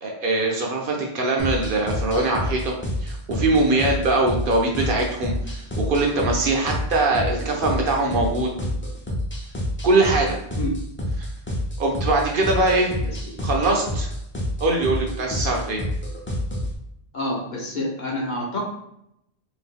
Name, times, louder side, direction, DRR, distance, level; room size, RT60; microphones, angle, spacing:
voice 1, 0.0-2.7 3.0-8.5 9.8-10.3 11.8-13.0 13.4-14.1 14.6-15.8, right 2 dB, 60° right, 0 dB, 0.7 m, -22 dB
sound 1, 1.4-16.7, left 1 dB, 20° left, 0.4 m, -28 dB
voice 2, 17.1-18.6, left 1 dB, 50° left, -3 dB, 0.8 m, -28 dB
2.8 x 2.3 x 3.5 m, 0.78 s
omnidirectional pair, 1.1 m